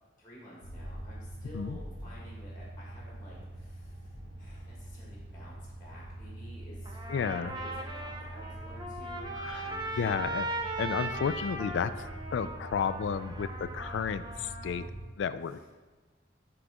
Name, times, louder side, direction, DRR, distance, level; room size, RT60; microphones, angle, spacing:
voice 1, 0.2-10.1 15.4-15.6, equal, 15° left, -5 dB, 1.4 m, -52 dB
sound 1, 0.6-15.1, right 1 dB, 90° right, 2.2 m, -44 dB
Trumpet, 6.8-14.9, right 2 dB, 25° right, 0.6 m, -39 dB
voice 2, 7.1-7.5 9.4-9.6 10.0-10.5 10.8-11.9 12.3-13.5 13.7-14.8 15.2-15.7, left 6 dB, 65° left, 13 dB, 0.3 m, -32 dB
11.0 x 3.9 x 3.5 m, 1.3 s
head